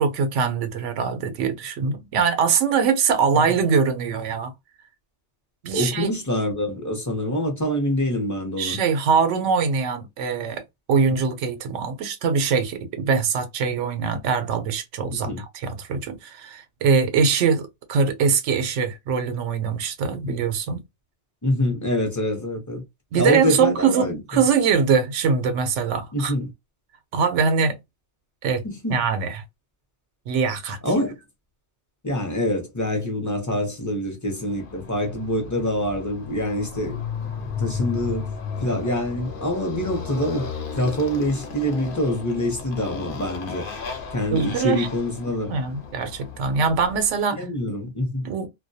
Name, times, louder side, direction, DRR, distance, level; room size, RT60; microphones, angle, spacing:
voice 1, 0.0-4.5 5.6-6.1 8.6-10.6 10.9-15.3 15.6-20.8 23.1-26.3 27.1-27.8 28.4-28.6 28.9-29.4 30.3-30.8 44.3-44.9 45.5-47.4 48.2-48.5, right 5 dB, 85° right, 0.9 m, -22 dB
voice 2, 5.7-8.8 15.1-15.4 20.2-20.4 21.4-22.8 23.1-24.4 26.1-26.5 28.6-29.0 30.8-31.2 32.0-37.0 37.6-38.3 38.6-43.7 44.1-45.5 47.3-48.3, left 1 dB, 20° left, 0.6 m, -25 dB
Motorcycle, 34.4-47.1, left 5 dB, 55° left, 0.7 m, -35 dB
2.2 x 2.2 x 2.6 m
omnidirectional pair, 1.2 m